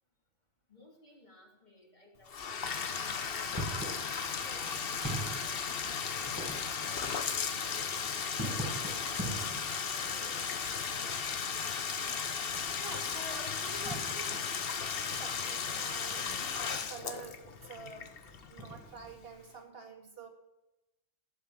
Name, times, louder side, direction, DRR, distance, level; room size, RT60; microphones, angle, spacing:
voice 1, 0.7-5.5 6.0-7.9 8.3-11.4, left 1 dB, 40° left, -1 dB, 3.6 m, -58 dB
Bathtub (filling or washing), 2.3-19.0, left 6 dB, 55° left, 1.1 m, -35 dB
sound 1, 3.3-19.2, right 1 dB, 15° right, 4.8 m, -45 dB
voice 2, 12.8-14.5 14.9-18.2 18.5-20.3, right 3 dB, 55° right, 4 dB, 2.4 m, -47 dB
15.5 x 12.0 x 7.3 m, 0.95 s
omnidirectional pair, 1.2 m